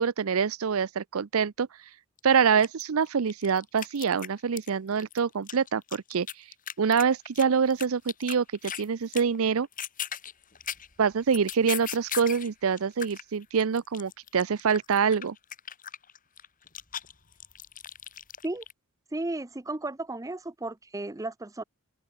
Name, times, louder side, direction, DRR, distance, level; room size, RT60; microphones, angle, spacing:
voice 1, 0.0-1.7 2.2-6.3 6.8-9.7 11.0-15.4, right 6 dB, 80° right, 0.6 m, -25 dB
sound 1, 2.2-2.3 2.6-4.7 5.0-8.9 9.1-9.4 9.6-12.5 12.8-18.7, left 9 dB, 40° left, 3.4 m, -38 dB
voice 2, 19.1-21.6, right 2 dB, 15° right, 0.7 m, -34 dB
open air
head